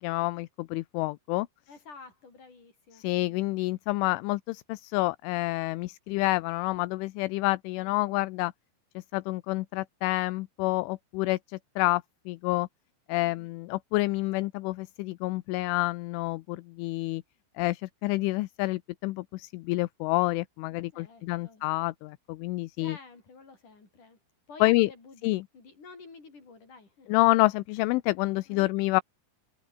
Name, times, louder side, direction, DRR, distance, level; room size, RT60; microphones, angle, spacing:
voice 1, 0.0-1.5 2.9-8.5 9.1-12.7 13.1-17.2 17.6-23.0 24.6-24.9 25.2-25.4 27.1-29.0, left 21 dB, 80° left, 3.1 m, -28 dB
voice 2, 1.7-3.4 13.2-13.5 20.7-21.6 22.8-24.2 24.5-27.1 28.5-28.7, left 4 dB, 40° left, 8.3 m, -50 dB
omnidirectional pair, 5.9 m